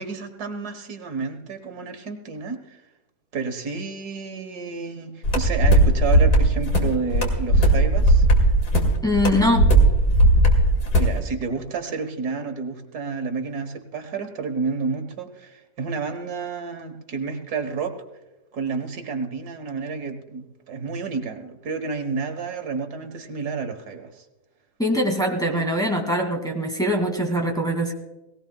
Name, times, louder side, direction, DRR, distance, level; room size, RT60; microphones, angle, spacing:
voice 1, 0.0-2.8 3.3-8.3 11.0-18.0 18.5-24.3, right 4 dB, 75° right, 7 dB, 1.9 m, -30 dB
sound 1, 5.2-11.2, right 1 dB, 75° left, 2.8 m, -17 dB
voice 2, 9.0-9.7 24.8-27.9, equal, ahead, 1 dB, 2.1 m, -22 dB
18.5 x 18.0 x 2.3 m, 1.0 s
omnidirectional pair, 1.7 m